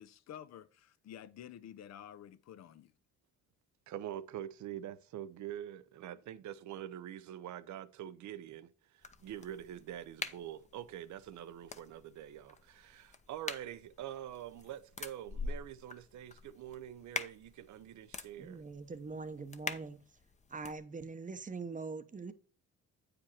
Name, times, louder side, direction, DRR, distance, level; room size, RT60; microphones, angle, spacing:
voice 1, 0.0-2.9, left 10 dB, 60° left, 0.6 m, -51 dB
voice 2, 3.9-18.6, right 11 dB, 70° right, 0.7 m, -45 dB
sound 1, 9.0-20.8, left 4 dB, 25° left, 0.7 m, -46 dB
voice 3, 18.4-20.0 20.5-22.3, right 4 dB, 25° right, 0.8 m, -43 dB
8.5 x 5.1 x 4.3 m
cardioid pair, 90°, 30 cm